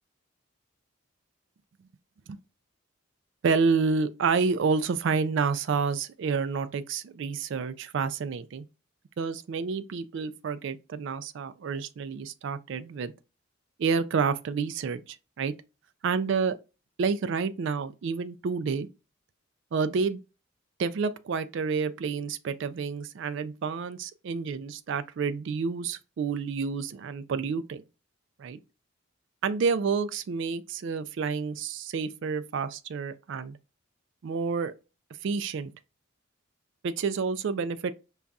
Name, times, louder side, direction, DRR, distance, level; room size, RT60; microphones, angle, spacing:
voice 1, 3.4-8.7 9.2-13.1 13.8-15.5 16.0-16.6 17.0-18.9 19.7-20.2 20.8-27.8 28.4-28.6 29.4-33.6 34.2-34.7 35.2-35.7 36.8-37.9, right 5 dB, 60° right, 0.3 m, -29 dB
5.2 x 2.3 x 2.3 m
head